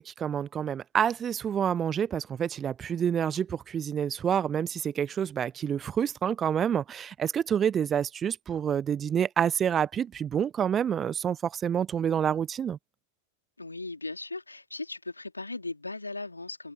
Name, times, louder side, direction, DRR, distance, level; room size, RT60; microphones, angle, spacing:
voice 1, 0.0-12.8, right 8 dB, 25° right, 0.9 m, -28 dB
voice 2, 13.6-16.7, left 2 dB, 80° left, 2.6 m, -37 dB
figure-of-eight pair, 90°, 0 cm